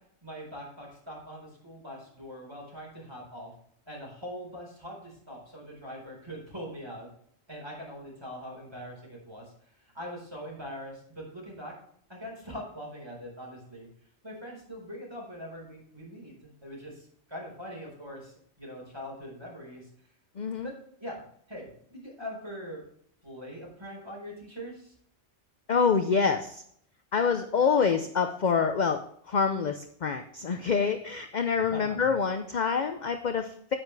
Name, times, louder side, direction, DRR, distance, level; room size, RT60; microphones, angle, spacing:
voice 1, 0.2-3.5 3.9-7.1 7.5-9.5 9.9-11.7 12.1-13.9 14.2-19.9 20.6-20.7 21.0-21.2 21.5-22.8 23.2-24.9 31.5-32.1, equal, 20° right, -2 dB, 4.4 m, -42 dB
voice 2, 20.4-20.7 25.7-26.6 27.1-29.0 29.3-33.8, left 5 dB, 45° left, 7 dB, 0.7 m, -26 dB
9.4 x 9.1 x 3.3 m, 0.66 s
omnidirectional pair, 1.2 m